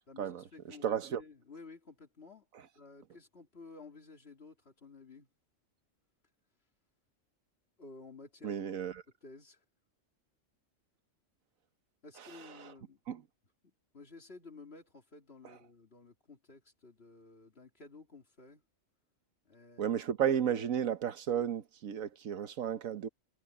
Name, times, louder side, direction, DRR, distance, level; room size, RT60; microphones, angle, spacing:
voice 1, 0.1-2.5 2.7-5.3 7.8-8.6 9.2-9.6 12.0-13.0 13.6-18.6 19.4-19.9, left 3 dB, 50° left, 2.9 m, -53 dB
voice 2, 0.8-1.2 8.4-8.9 13.1-13.2 19.8-23.1, right 9 dB, 90° right, 1.5 m, -33 dB
omnidirectional pair, 1.4 m